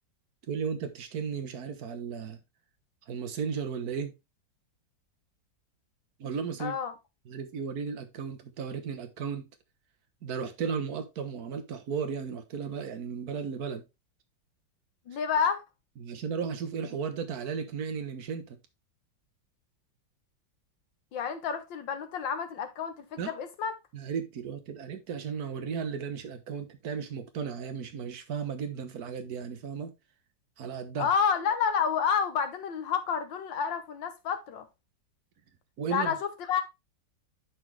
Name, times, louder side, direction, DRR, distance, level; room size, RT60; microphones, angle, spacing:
voice 1, 0.5-2.4 3.1-4.1 6.2-6.8 7.3-9.5 10.2-13.8 16.0-18.6 23.2-23.3 23.9-29.9 30.6-31.1 35.8-36.2, right 6 dB, 55° right, 1.6 m, -35 dB
voice 2, 6.6-6.9 15.1-15.6 21.1-23.7 31.0-34.7 35.9-36.6, left 7 dB, 80° left, 1.8 m, -29 dB
11.0 x 4.2 x 3.2 m
omnidirectional pair, 2.0 m